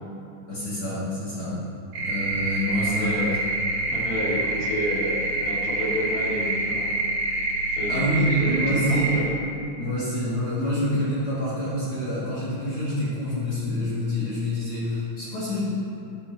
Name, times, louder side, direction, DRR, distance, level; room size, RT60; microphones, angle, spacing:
voice 1, 0.5-1.6 2.0-3.3 7.9-9.1 9.8-15.6, equal, 45° left, -10 dB, 2.7 m, -27 dB
sound 1, 1.9-9.2, right 2 dB, 80° right, 3.8 m, -27 dB
voice 2, 2.7-3.4 3.9-6.9 7.7-9.3, equal, 80° left, -6 dB, 3.7 m, -30 dB
12.5 x 11.0 x 2.8 m, 2.7 s
omnidirectional pair, 3.7 m